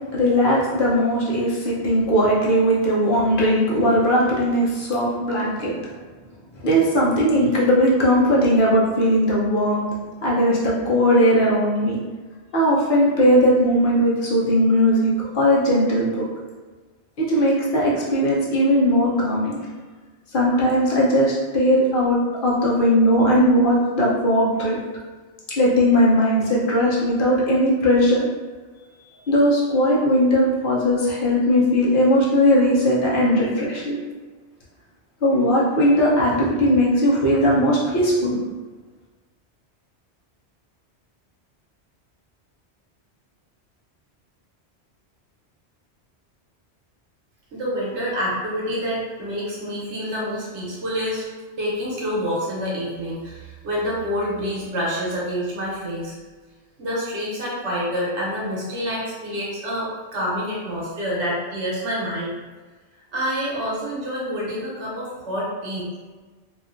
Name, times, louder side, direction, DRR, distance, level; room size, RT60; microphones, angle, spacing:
voice 1, 0.1-5.8 6.6-9.8 10.2-12.0 12.5-16.3 17.2-19.6 20.3-24.8 25.6-28.3 29.3-34.0 35.2-38.4, equal, 55° left, -5 dB, 0.7 m, -18 dB
voice 2, 47.5-51.3 51.6-56.2 56.8-62.3 63.1-65.9, equal, 85° right, -5 dB, 1.2 m, -27 dB
2.7 x 2.4 x 2.4 m, 1.3 s
omnidirectional pair, 1.1 m